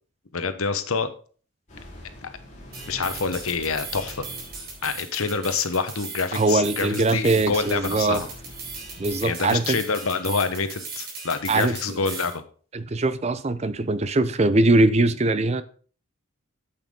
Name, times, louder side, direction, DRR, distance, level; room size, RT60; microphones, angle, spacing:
voice 1, 0.3-1.1 2.2-2.3 2.9-4.2 4.8-8.3 9.2-12.4, left 4 dB, 80° left, 10 dB, 1.1 m, -27 dB
sound 1, 1.7-5.0 7.3-9.3, left 1 dB, 35° left, 3.7 m, -44 dB
sound 2, 2.7-12.4, right 4 dB, 45° right, 3.9 m, -38 dB
voice 2, 6.3-8.2 9.0-9.8 11.5-12.0 12.7-15.6, right 2 dB, 30° right, 14 dB, 0.5 m, -21 dB
8.9 x 8.2 x 3.7 m, 0.41 s
head